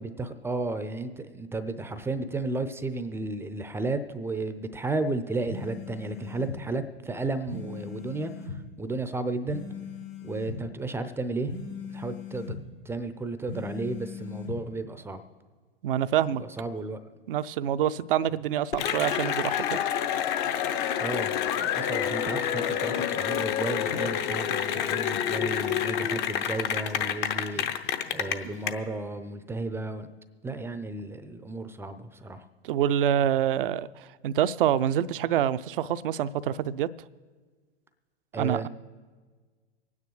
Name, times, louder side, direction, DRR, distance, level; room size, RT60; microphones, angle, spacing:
voice 1, 0.0-9.6 10.2-11.5 11.9-12.6 12.9-15.2 16.3-17.0 21.0-27.7 28.1-30.1 30.4-32.4 38.3-38.7, right 2 dB, 10° right, 0.5 m, -33 dB
sound 1, 5.5-6.6 7.5-8.6 9.5-10.6 11.5-12.6 13.5-14.6, left 4 dB, 75° left, 3.4 m, -39 dB
voice 2, 15.8-16.4 17.3-19.8 32.6-36.9 38.4-38.7, right 10 dB, 60° right, 0.5 m, -26 dB
Cheering / Applause, 18.7-28.7, left 9 dB, 50° left, 0.9 m, -28 dB
25.5 x 9.6 x 3.1 m
figure-of-eight pair, 95°, 32 cm